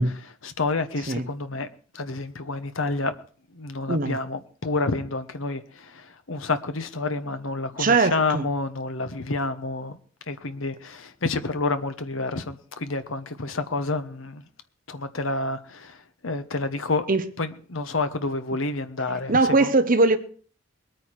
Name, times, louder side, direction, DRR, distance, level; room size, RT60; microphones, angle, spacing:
voice 1, 0.0-1.7 1.9-3.1 3.5-10.0 10.3-14.5 14.9-17.1 17.4-19.7, left 3 dB, 75° left, 1.2 m, -29 dB
voice 2, 7.8-8.4 17.1-17.2 19.3-20.2, right 3 dB, 45° right, 1.0 m, -20 dB
21.0 x 9.3 x 4.7 m
head